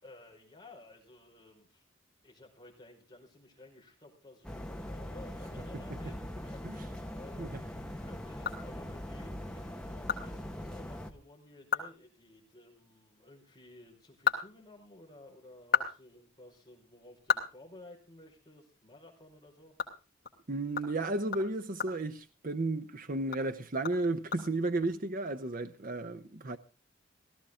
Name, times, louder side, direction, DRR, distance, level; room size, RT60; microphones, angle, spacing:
voice 1, 0.0-1.8 2.2-19.7, left 2 dB, 20° left, 5.0 m, -55 dB
sound 1, 4.4-11.1, left 1 dB, 5° left, 1.6 m, -42 dB
sound 2, 8.4-9.2 9.6-9.7 10.1-10.2 10.6-10.7 11.1-11.2 11.6-12.0 12.2-12.4 13.9-15.1 15.5-18.4 18.7-18.9 19.3-22.8 23.2-24.8, left 8 dB, 50° left, 3.0 m, -35 dB
voice 2, 20.5-26.6, right 2 dB, 45° right, 0.8 m, -33 dB
17.5 x 14.5 x 3.7 m
head